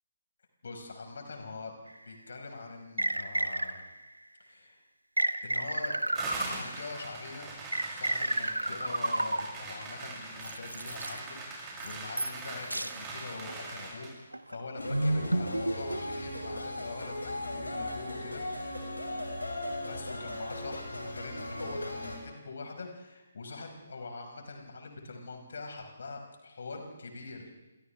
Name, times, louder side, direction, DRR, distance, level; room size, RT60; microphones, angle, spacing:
voice 1, 0.6-1.7 2.0-3.8 4.4-4.8 5.4-6.0 6.4-18.4 19.8-27.5, left 3 dB, 55° left, 2 dB, 4.9 m, -43 dB
sound 1, 2.0-2.1 3.0-4.0 5.2-6.9 7.7-9.8 10.4-11.2 11.8-12.5 12.7-13.0 13.5-13.7 14.3-16.3, right 1 dB, 80° right, 1.0 m, -32 dB
sound 2, 6.2-14.2, right 3 dB, 15° right, 6.8 m, -42 dB
sound 3, 14.8-22.2, left 1 dB, 75° left, 6.3 m, -37 dB
30.0 x 27.5 x 3.4 m, 1.1 s
figure-of-eight pair, 135°, 0 cm